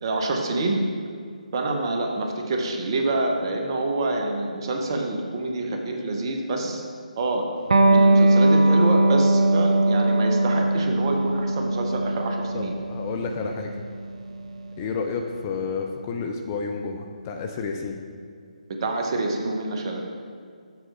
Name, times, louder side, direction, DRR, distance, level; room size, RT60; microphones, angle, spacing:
voice 1, 0.0-0.8 1.5-6.8 7.2-7.4 7.9-12.7 18.8-20.2, right 2 dB, 35° right, 2 dB, 0.9 m, -27 dB
Electric guitar, 7.7-14.9, right 2 dB, 60° right, 0.6 m, -20 dB
voice 2, 12.5-13.7 14.8-18.0, left 5 dB, 25° left, 3 dB, 0.5 m, -30 dB
7.1 x 6.0 x 4.6 m, 2.2 s
figure-of-eight pair, 145°, 4 cm